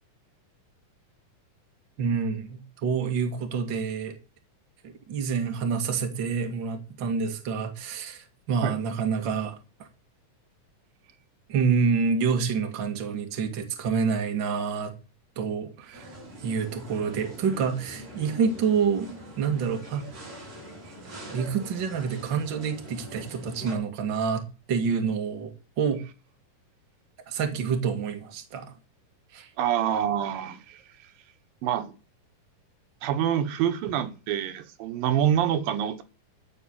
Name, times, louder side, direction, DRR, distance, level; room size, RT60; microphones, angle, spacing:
voice 1, 2.0-4.2 4.8-9.6 11.5-14.9 15.4-16.1 16.4-20.1 21.3-26.0 27.3-28.7 29.3-29.5, right 6 dB, 40° right, 2.1 m, -28 dB
sound 1, 15.9-23.8, equal, 65° right, 7.8 m, -43 dB
voice 2, 29.6-30.8 31.6-31.9 33.0-36.0, right 10 dB, 85° right, 2.9 m, -26 dB
14.0 x 4.7 x 8.7 m
omnidirectional pair, 4.0 m